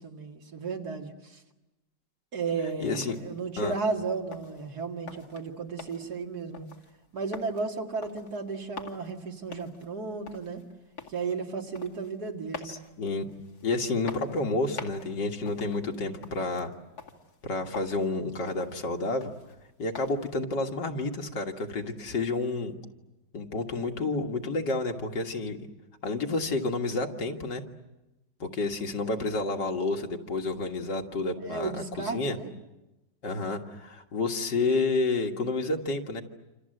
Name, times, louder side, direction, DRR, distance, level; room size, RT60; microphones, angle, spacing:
voice 1, 0.0-1.4 2.3-6.7 7.1-10.6 11.1-12.7 31.4-32.5, right 4 dB, 60° right, 2 dB, 2.7 m, -34 dB
sound 1, 2.4-20.4, left 5 dB, 60° left, 2.8 m, -47 dB
voice 2, 2.8-3.2 3.6-3.7 12.6-13.3 13.6-16.7 17.4-19.3 19.8-22.8 23.3-25.6 26.0-27.6 28.4-32.4 33.2-36.2, left 3 dB, 75° left, 3 dB, 2.4 m, -30 dB
27.5 x 27.5 x 7.9 m, 1.0 s
omnidirectional pair, 1.9 m